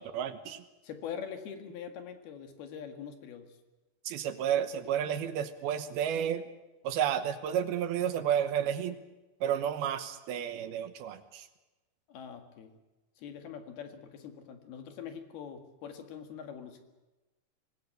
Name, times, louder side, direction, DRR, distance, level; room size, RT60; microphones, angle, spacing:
voice 1, 0.0-0.6 4.1-6.5 6.8-9.0 9.4-11.5, right 9 dB, 75° right, 10 dB, 2.8 m, -31 dB
voice 2, 0.8-3.6 12.1-12.7 13.2-16.8, left 7 dB, 70° left, 6 dB, 3.7 m, -43 dB
24.5 x 19.0 x 8.0 m, 1.1 s
omnidirectional pair, 4.8 m